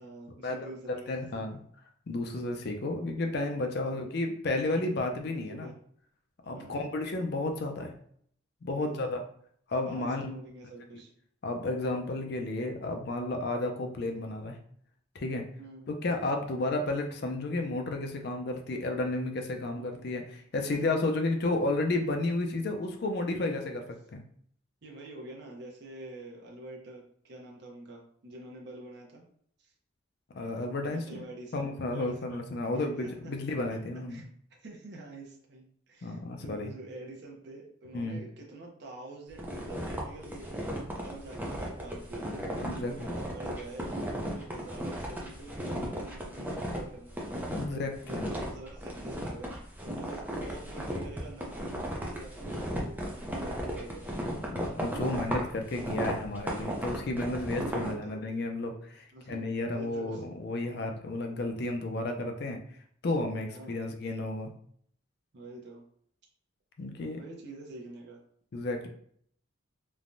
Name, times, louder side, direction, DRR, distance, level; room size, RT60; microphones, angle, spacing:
voice 1, 0.0-1.6 3.8-4.1 5.3-5.7 6.5-7.0 8.7-9.1 9.8-11.1 15.6-15.9 19.7-19.9 20.6-20.8 23.3-23.7 24.8-29.2 29.6-29.7 30.8-32.4 32.7-33.3 34.1-34.2 34.6-40.7 41.0-42.3 42.6-47.2 47.6-49.5 49.8-54.2 57.8-58.2 59.1-60.2 63.5-63.9 65.3-65.8 67.1-68.2, right 2 dB, 55° right, -1 dB, 0.6 m, -46 dB
voice 2, 0.9-1.6 2.1-5.7 6.5-7.9 8.6-9.2 9.7-10.3 11.4-14.6 15.1-15.5 15.9-23.8 24.1-24.2 30.3-31.3 31.5-34.2 36.0-36.7 37.9-38.2 42.6-43.1 47.5-48.3 54.5-62.6 63.0-64.5 66.8-67.2 68.5-68.9, left 2 dB, 55° left, 4 dB, 0.4 m, -32 dB
sound 1, 39.4-46.8 47.1-47.7 48.0-57.9, equal, 10° right, 0.4 m, -35 dB
3.2 x 2.1 x 2.5 m, 0.62 s
head